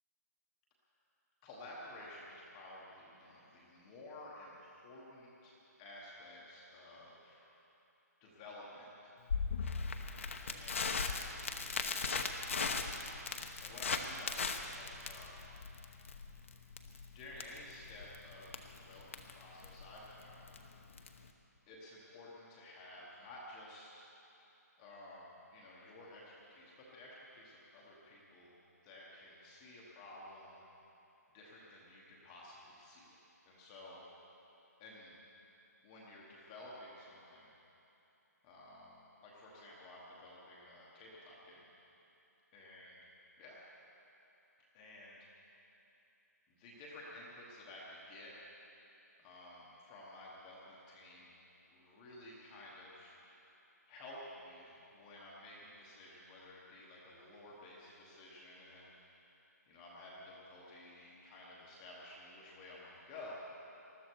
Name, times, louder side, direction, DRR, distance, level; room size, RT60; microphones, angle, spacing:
voice 1, 1.4-7.5 8.2-9.1 10.3-12.4 12.7-13.0 13.3-15.5 17.1-20.6 21.7-24.0 24.8-28.5 28.8-30.6 31.3-33.2 33.5-34.1 34.8-35.2 35.8-37.5 38.4-41.7 42.5-42.9 43.4-43.6 44.7-45.3 46.5-48.3 49.2-51.3 51.7-53.2 53.9-63.3, left 1 dB, 10° left, -5 dB, 1.1 m, -53 dB
Crackle, 9.3-21.3, left 5 dB, 50° left, 0.9 m, -39 dB
20.0 x 13.5 x 4.6 m, 3.0 s
hypercardioid pair, 180°, 9 cm